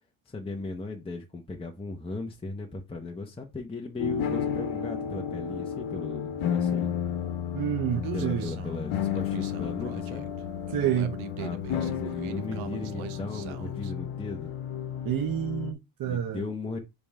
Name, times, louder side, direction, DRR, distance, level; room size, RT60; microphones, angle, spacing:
voice 1, 0.3-6.9 8.1-10.3 11.4-14.5 16.0-16.8, left 3 dB, 10° left, 0.7 m, -37 dB
sound 1, 4.0-15.7, left 8 dB, 70° left, 1.0 m, -32 dB
voice 2, 7.5-8.5 10.7-11.2 15.0-16.4, right 10 dB, 45° right, 0.6 m, -29 dB
Human voice, 7.9-13.9, right 12 dB, 80° right, 0.8 m, -42 dB
5.2 x 3.7 x 5.3 m
cardioid pair, 145°, 48 cm